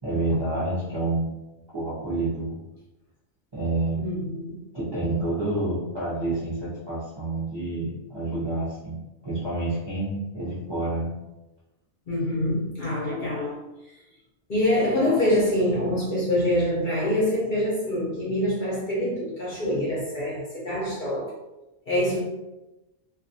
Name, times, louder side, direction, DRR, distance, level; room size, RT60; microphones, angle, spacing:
voice 1, 0.0-1.3 1.7-2.6 3.5-4.0 4.7-11.1, right 2 dB, 30° right, -10 dB, 0.5 m, -28 dB
voice 2, 4.0-4.6 12.1-13.6 14.5-21.3 21.9-22.2, left 1 dB, 50° left, -6 dB, 0.6 m, -25 dB
2.3 x 2.3 x 2.6 m, 1.0 s
omnidirectional pair, 1.4 m